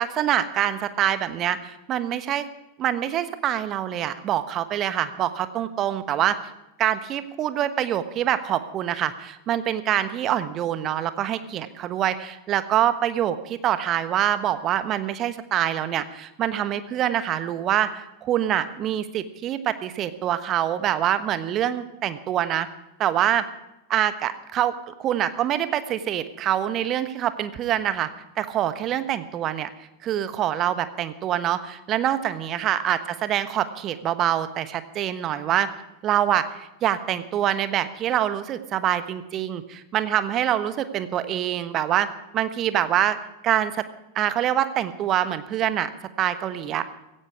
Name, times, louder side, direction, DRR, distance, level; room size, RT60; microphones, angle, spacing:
voice 1, 0.0-2.5 2.8-6.4 6.8-22.7 23.0-23.4 23.9-28.1 28.4-29.7 30.0-35.7 36.0-42.1 42.3-43.2 43.4-43.8 44.1-45.9 46.2-46.8, right 11 dB, 30° right, 12 dB, 1.2 m, -25 dB
16.5 x 16.0 x 4.8 m, 0.91 s
figure-of-eight pair, 90°, 0 cm